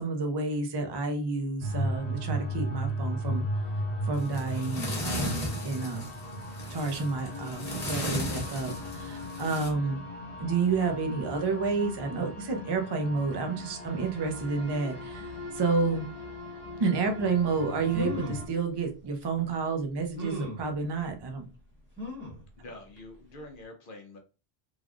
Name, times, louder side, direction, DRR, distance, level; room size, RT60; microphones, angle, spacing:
voice 1, 0.0-3.4 4.1-6.1 6.7-10.0 10.4-16.1 16.8-21.4, right 4 dB, 40° right, 5 dB, 0.4 m, -30 dB
sound 1, 1.6-18.5, equal, 90° left, 1.2 m, -37 dB
sound 2, 4.1-9.7, equal, 40° left, 1.0 m, -36 dB
sound 3, 17.5-17.6 17.9-18.5 19.2-19.3 20.2-20.7 22.0-22.4 23.0-23.1 23.4-23.5, left 2 dB, 10° right, 0.9 m, -37 dB
voice 2, 22.6-24.2, left 2 dB, 60° left, 4 dB, 0.7 m, -46 dB
3.3 x 2.4 x 2.4 m, 0.32 s
omnidirectional pair, 1.1 m